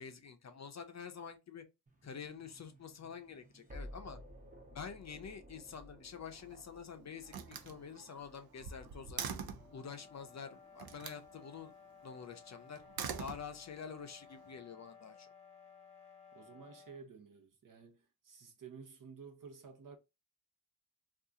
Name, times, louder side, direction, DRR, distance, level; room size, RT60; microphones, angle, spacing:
voice 1, 0.0-1.6 2.0-4.2 4.7-9.3 9.7-11.7 12.0-12.8 13.2-15.3, left 6 dB, 50° left, 0.5 m, -47 dB
sound 1, 1.9-12.9, equal, 20° right, 0.7 m, -56 dB
Slam, 6.2-6.8 7.3-9.8 10.8-11.2 12.7-13.9, right 7 dB, 80° right, 0.6 m, -44 dB
sound 2, 9.5-17.1, left 6 dB, 20° left, 0.8 m, -58 dB
voice 2, 16.3-20.0, right 5 dB, 60° right, 0.9 m, -53 dB
2.7 x 2.4 x 3.5 m
wide cardioid pair, 175°, 37 cm